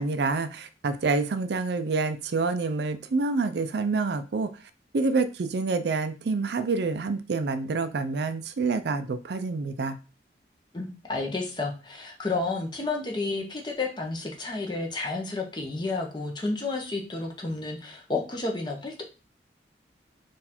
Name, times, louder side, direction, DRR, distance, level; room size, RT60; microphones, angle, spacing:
voice 1, 0.0-4.5 4.9-10.0, right 3 dB, 70° right, 0.4 m, -27 dB
voice 2, 10.7-19.0, left 3 dB, 25° left, 0.8 m, -31 dB
3.9 x 2.5 x 4.2 m
head